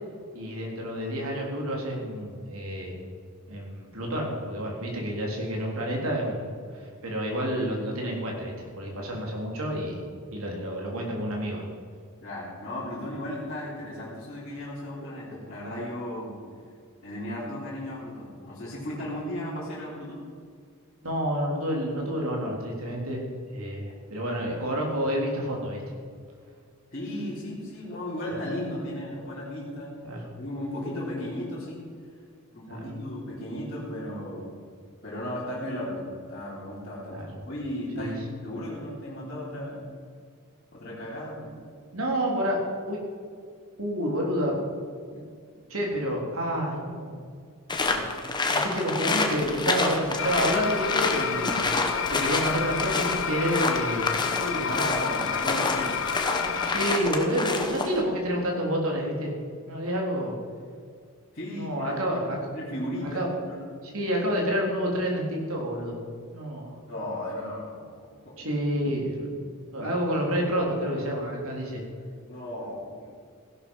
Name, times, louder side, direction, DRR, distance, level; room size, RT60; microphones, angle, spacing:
voice 1, 0.3-3.0 3.5-6.5 6.7-10.0 10.3-11.6 21.0-23.2 23.5-25.9 30.0-30.2 32.7-32.8 37.1-37.3 38.0-38.1 41.9-42.6 42.9-43.0 43.8-44.6 45.1-45.2 45.7-47.2 48.5-51.6 52.1-54.9 56.6-59.3 59.7-60.3 61.6-62.4 63.1-63.3 63.9-66.0 66.3-66.7 68.4-69.3 69.7-71.8, equal, 70° right, -1 dB, 3.8 m, -29 dB
voice 2, 12.2-16.4 17.0-20.2 26.9-29.9 30.4-31.9 32.5-34.6 35.0-39.9 40.7-41.6 47.8-48.1 54.6-55.9 61.3-62.2 62.5-63.6 66.9-68.5 72.3-73.1, left 1 dB, 40° left, -10 dB, 3.5 m, -35 dB
sound 1, 47.7-58.0, left 3 dB, 20° left, 1.4 m, -28 dB
sound 2, 50.2-57.0, left 7 dB, 60° left, 0.8 m, -30 dB
16.5 x 11.5 x 5.6 m, 2.1 s
head